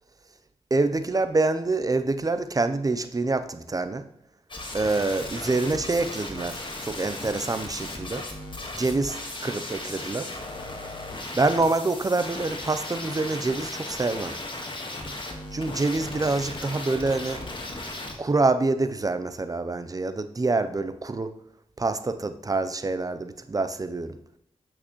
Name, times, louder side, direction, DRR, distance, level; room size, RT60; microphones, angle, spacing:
voice 1, 0.7-4.0 4.7-8.3 8.7-10.3 11.3-14.4 15.5-17.4 18.2-21.3 21.8-24.2, right 3 dB, 30° right, 11 dB, 0.7 m, -26 dB
sound 1, 4.5-18.1, left 2 dB, 40° left, 1.6 m, -36 dB
8.3 x 6.1 x 3.1 m, 0.79 s
cardioid pair, 55°, 12 cm